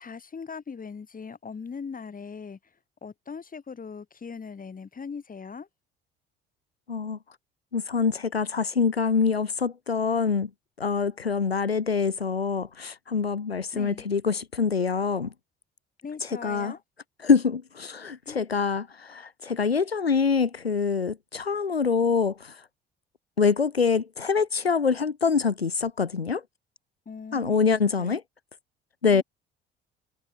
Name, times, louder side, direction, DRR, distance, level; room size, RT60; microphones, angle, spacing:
voice 1, 0.0-2.6 3.0-5.7 13.7-14.0 16.0-16.8 18.3-18.4 27.1-27.7 28.0-28.2 29.1-29.2, left 5 dB, 30° left, 4.7 m, -40 dB
voice 2, 6.9-7.2 7.7-10.5 10.8-15.3 16.2-16.7 17.2-22.6 23.4-26.4 27.3-28.2 29.0-29.2, left 5 dB, 90° left, 0.6 m, -25 dB
figure-of-eight pair, 55°, 30 cm